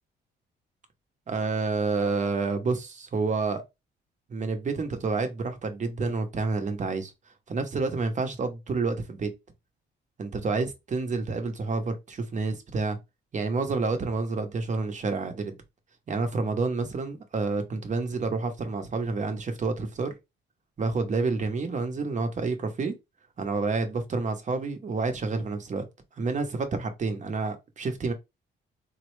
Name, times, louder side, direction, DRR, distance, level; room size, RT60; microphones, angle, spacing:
voice 1, 1.3-3.6 4.3-7.1 7.5-9.3 10.2-13.0 13.3-15.6 16.1-20.1 20.8-23.0 23.4-25.9 26.2-28.1, right 4 dB, 40° right, 0.8 m, -29 dB
3.9 x 2.1 x 3.1 m
cardioid pair, 90°, 20 cm